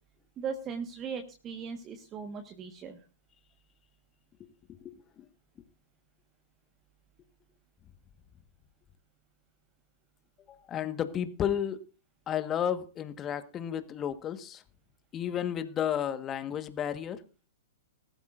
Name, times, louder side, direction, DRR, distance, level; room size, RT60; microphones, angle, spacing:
voice 1, 0.4-3.0, right 6 dB, 25° right, 1.4 m, -38 dB
voice 2, 4.7-5.3 10.5-11.8 12.3-14.6 15.1-17.2, left 9 dB, 25° left, 1.4 m, -32 dB
20.0 x 13.5 x 2.6 m
figure-of-eight pair, 110°, 0 cm